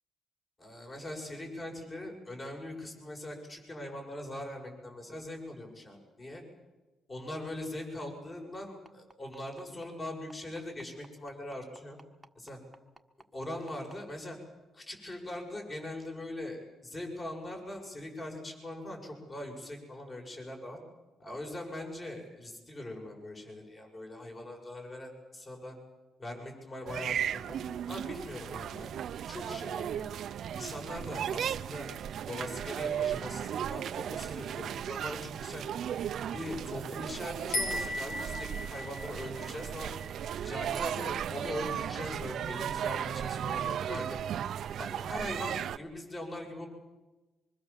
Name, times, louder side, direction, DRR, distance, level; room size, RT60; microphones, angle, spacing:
voice 1, 0.6-6.4 7.1-12.0 12.3-12.6 13.3-14.4 14.7-20.8 21.2-25.8 26.2-27.6 27.9-28.9 29.3-30.1 30.5-31.9 32.3-35.7 36.3-39.9 40.4-44.2 44.8-46.7, left 1 dB, 30° left, 1 dB, 7.7 m, -41 dB
sound 1, 8.9-14.0 15.0-15.1 15.5-15.6 16.1-16.2, right 2 dB, 10° right, 1.6 m, -54 dB
sound 2, 26.9-45.8, right 9 dB, 70° right, 0.7 m, -36 dB
sound 3, 37.5-40.9, left 2 dB, 85° left, 2.5 m, -37 dB
25.0 x 24.0 x 7.5 m, 1.2 s
cardioid pair, 90°, 0 cm